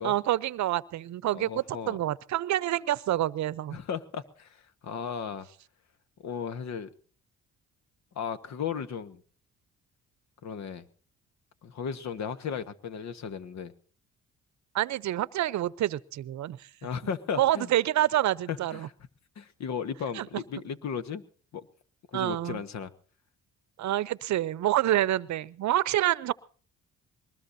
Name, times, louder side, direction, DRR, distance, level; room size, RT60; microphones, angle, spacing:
voice 1, 0.0-3.8 14.7-16.6 17.4-18.9 20.2-20.3 22.1-22.6 23.8-26.3, right 13 dB, 65° right, 19 dB, 0.7 m, -27 dB
voice 2, 1.3-2.0 3.7-5.5 6.2-6.9 8.1-9.2 10.4-10.8 11.6-13.7 16.8-17.7 18.5-18.9 19.4-21.2 21.5-21.6 22.1-22.9, left 7 dB, 65° left, 12 dB, 1.4 m, -35 dB
22.0 x 19.5 x 2.7 m, 0.41 s
cardioid pair, 90°, 30 cm